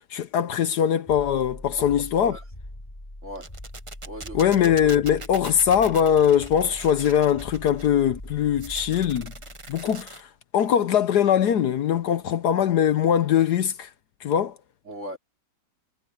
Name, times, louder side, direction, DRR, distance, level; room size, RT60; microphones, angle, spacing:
voice 1, 0.1-2.4 4.3-9.3 9.7-10.3 10.5-13.9 14.2-14.5, left 9 dB, 70° left, 1.4 m, -21 dB
sound 1, 1.1-10.2, left 1 dB, 20° left, 4.4 m, -42 dB
sound 2, 3.4-7.9 8.6-10.2, right 3 dB, 20° right, 0.9 m, -42 dB
voice 2, 4.0-4.5 14.9-15.2, equal, 40° right, 4.3 m, -37 dB
omnidirectional pair, 1.9 m